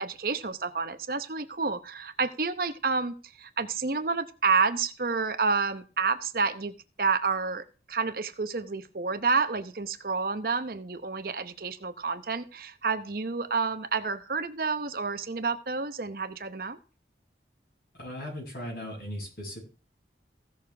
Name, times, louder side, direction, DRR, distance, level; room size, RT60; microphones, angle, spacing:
voice 1, 0.0-16.8, right 4 dB, 55° right, 9 dB, 0.9 m, -29 dB
voice 2, 17.9-19.6, left 1 dB, 55° left, -1 dB, 6.3 m, -38 dB
16.0 x 6.5 x 3.4 m, 0.34 s
head